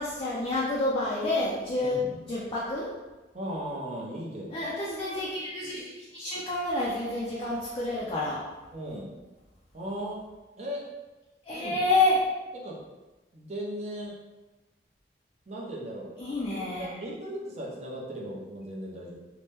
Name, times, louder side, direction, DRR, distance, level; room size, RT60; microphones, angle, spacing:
voice 1, 0.0-2.9 4.5-8.4 11.4-12.3 16.2-17.0, left 2 dB, 30° left, -5 dB, 0.4 m, -29 dB
voice 2, 1.8-2.2 3.3-4.6 8.7-9.1 9.7-10.2 10.6-10.8 11.5-11.8 12.5-12.8 13.3-14.1 15.5-16.1 16.6-19.2, equal, 40° right, -3 dB, 0.6 m, -37 dB
2.8 x 2.1 x 3.3 m, 1.1 s
head